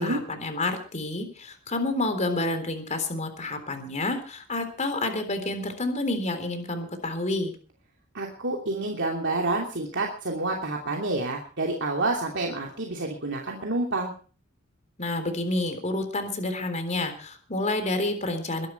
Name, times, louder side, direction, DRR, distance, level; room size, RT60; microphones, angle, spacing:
voice 1, 0.0-7.5 15.0-18.7, left 2 dB, 35° left, 7 dB, 3.7 m, -29 dB
voice 2, 8.1-14.1, right 2 dB, 60° right, 0 dB, 2.9 m, -28 dB
22.5 x 11.0 x 4.6 m, 0.39 s
head